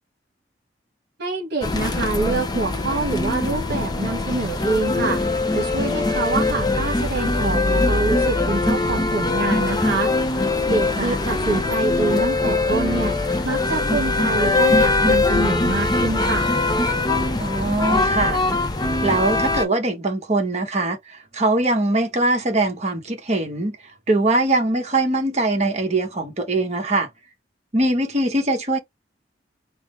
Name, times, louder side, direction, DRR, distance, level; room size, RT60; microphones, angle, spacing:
voice 1, 1.2-5.2 5.5-16.5, right 3 dB, 65° right, 1.3 m, -26 dB
sound 1, 1.6-19.7, left 2 dB, 20° left, 0.5 m, -22 dB
voice 2, 17.4-18.4 19.0-23.8 24.1-27.1 27.7-28.8, right 2 dB, 35° right, 1.1 m, -22 dB
3.7 x 2.0 x 4.3 m
head